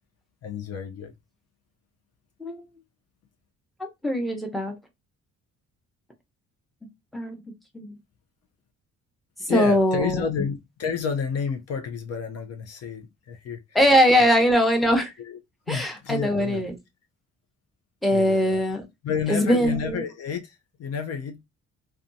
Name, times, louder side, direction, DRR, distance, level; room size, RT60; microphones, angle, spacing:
voice 1, 0.4-1.1 9.5-13.6 14.4-14.6 15.2-15.4 15.7-16.6 18.1-18.6 19.0-21.4, left 6 dB, 55° left, 0.5 m, -30 dB
voice 2, 3.8-4.7 7.1-7.4 7.7-8.0 9.4-10.5 13.7-15.1 15.7-16.7 18.0-18.8 19.3-20.0, equal, ahead, 0.8 m, -22 dB
2.5 x 2.3 x 2.6 m
cardioid pair, 90°, 30 cm